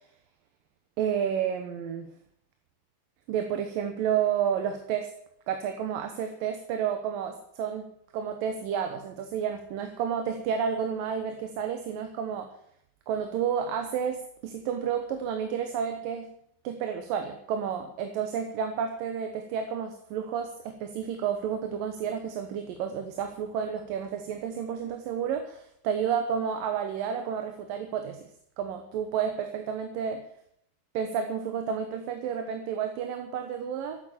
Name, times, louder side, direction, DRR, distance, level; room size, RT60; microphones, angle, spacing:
voice 1, 1.0-2.1 3.3-5.1 5.5-12.5 13.1-16.3 16.6-28.2 28.6-30.2 30.9-34.0, right 8 dB, 85° right, 6 dB, 2.9 m, -31 dB
13.5 x 9.3 x 8.8 m, 0.70 s
omnidirectional pair, 3.9 m